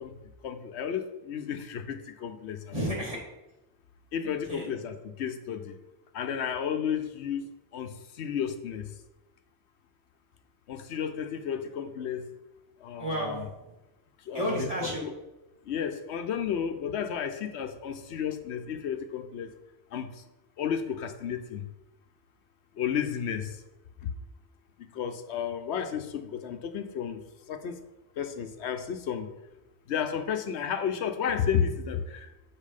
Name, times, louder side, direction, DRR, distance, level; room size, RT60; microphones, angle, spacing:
voice 1, 0.0-2.7 4.1-5.8 6.1-9.0 10.7-12.3 12.8-13.5 14.2-14.7 15.0-15.1 15.6-19.5 19.9-20.2 20.6-21.7 22.7-23.6 24.0-24.1 24.8-27.8 28.2-29.3 29.9-32.3, left 8 dB, 85° left, 8 dB, 1.0 m, -32 dB
voice 2, 2.7-3.2 4.2-4.7 13.0-13.8 14.3-15.0, equal, 35° right, -3 dB, 2.2 m, -32 dB
7.4 x 4.5 x 5.1 m, 0.99 s
omnidirectional pair, 1.1 m